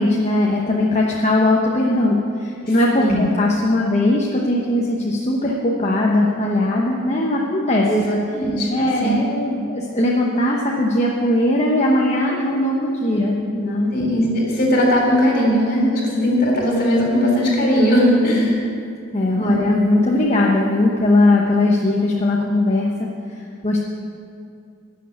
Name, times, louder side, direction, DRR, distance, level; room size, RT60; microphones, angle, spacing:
voice 1, 0.0-7.9 8.7-13.9 15.9-16.3 18.2-18.7 19.1-23.1 23.6-23.8, left 1 dB, 35° left, -2 dB, 1.0 m, -19 dB
voice 2, 7.9-8.7 9.0-9.2 13.9-18.6 19.4-19.6, equal, 50° left, -2 dB, 3.6 m, -18 dB
11.5 x 6.6 x 9.6 m, 2.4 s
head